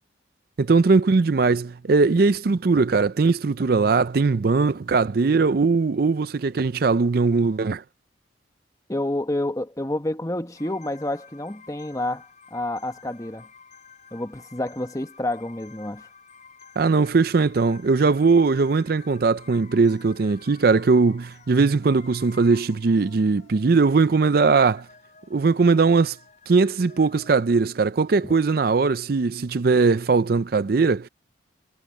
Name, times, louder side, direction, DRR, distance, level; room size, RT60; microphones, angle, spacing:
voice 1, 0.6-7.8 16.8-24.8 25.3-26.2 26.5-31.1, right 4 dB, 50° right, 0.4 m, -20 dB
voice 2, 8.9-12.3 12.5-13.5 14.1-16.1 28.2-28.3, left 1 dB, 20° left, 1.2 m, -29 dB
sound 1, 10.6-28.9, left 5 dB, 40° left, 6.6 m, -51 dB
head